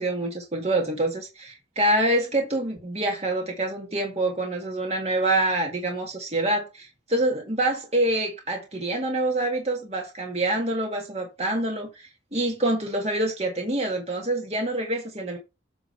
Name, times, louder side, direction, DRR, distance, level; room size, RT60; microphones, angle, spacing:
voice 1, 0.0-15.4, right 1 dB, 35° right, 1.8 m, -26 dB
8.3 x 3.7 x 5.5 m
head